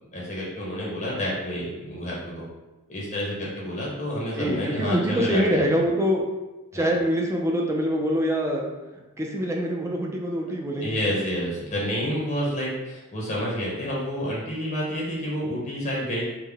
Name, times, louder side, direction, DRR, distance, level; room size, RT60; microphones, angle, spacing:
voice 1, 0.1-2.5 2.9-5.8 6.7-6.9 10.8-16.2, equal, 35° left, -5 dB, 0.7 m, -29 dB
voice 2, 4.4-6.2 6.7-8.6 9.2-10.9, equal, 15° right, 0 dB, 0.4 m, -24 dB
3.5 x 2.1 x 3.4 m, 1.1 s
head